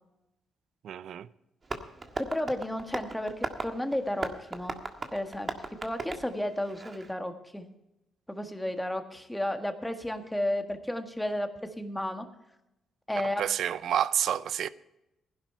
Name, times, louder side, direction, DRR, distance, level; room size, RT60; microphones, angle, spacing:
voice 1, 0.8-1.3 13.4-14.7, right 10 dB, 70° right, 0.6 m, -29 dB
Tap, 1.6-7.1, right 3 dB, 30° right, 1.7 m, -38 dB
voice 2, 2.2-4.8 5.1-5.5 5.8-7.7 8.3-12.3 13.1-13.4, left 1 dB, 5° left, 1.7 m, -32 dB
16.0 x 11.0 x 4.5 m
cardioid pair, 90°, 0 cm